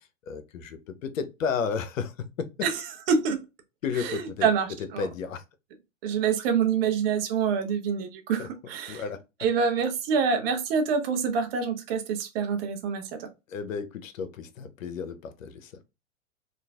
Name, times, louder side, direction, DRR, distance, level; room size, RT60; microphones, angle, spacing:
voice 1, 0.0-2.5 3.8-4.5 5.0-5.4 8.4-8.5 8.8-9.2 13.5-15.7, left 6 dB, 80° left, 0.7 m, -33 dB
voice 2, 3.1-3.4 4.0-5.1 6.0-9.0 9.4-13.3, right 6 dB, 45° right, 0.7 m, -26 dB
3.1 x 2.4 x 2.3 m
hypercardioid pair, 120°, 39 cm